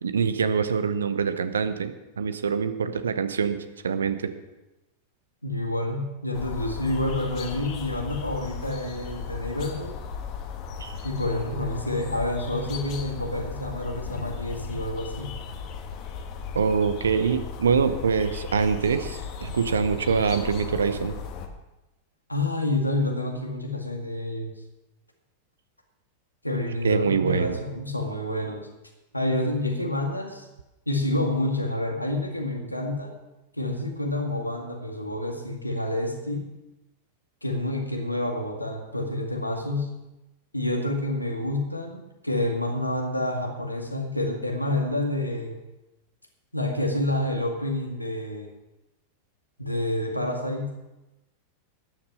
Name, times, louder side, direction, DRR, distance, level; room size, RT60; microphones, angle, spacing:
voice 1, 0.0-3.6 3.8-4.3 10.8-11.0 16.5-21.1 26.8-27.6, right 6 dB, 70° right, 11 dB, 0.9 m, -24 dB
voice 2, 5.4-10.0 11.0-15.3 22.3-24.5 26.4-28.7 29.1-30.5 30.9-33.2 33.6-36.5 37.4-40.0 40.5-45.6 46.5-48.5 49.6-50.8, left 1 dB, 85° left, 2 dB, 2.0 m, -28 dB
sound 1, 6.3-21.5, left 6 dB, 40° left, 1.5 m, -36 dB
13.0 x 9.9 x 5.5 m, 0.99 s
figure-of-eight pair, 90°, 0 cm